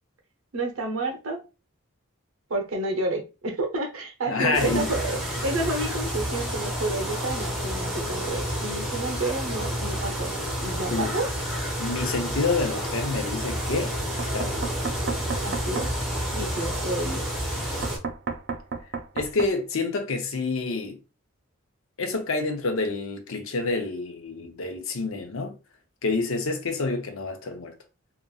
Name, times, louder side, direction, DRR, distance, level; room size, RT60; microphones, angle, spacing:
voice 1, 0.5-1.4 2.5-10.3 10.6-11.3 15.4-15.9 16.3-17.2, right 2 dB, 75° right, 0.8 m, -30 dB
voice 2, 4.3-4.9 10.9-11.2 11.8-13.9 14.3-14.6 19.1-21.0 22.0-25.5 26.0-27.7, left 3 dB, 70° left, 0.6 m, -28 dB
sound 1, 4.5-18.0, equal, ahead, 0.7 m, -30 dB
Knock, 14.2-15.9 17.8-19.5, right 4 dB, 50° right, 0.4 m, -32 dB
2.9 x 2.5 x 2.3 m
head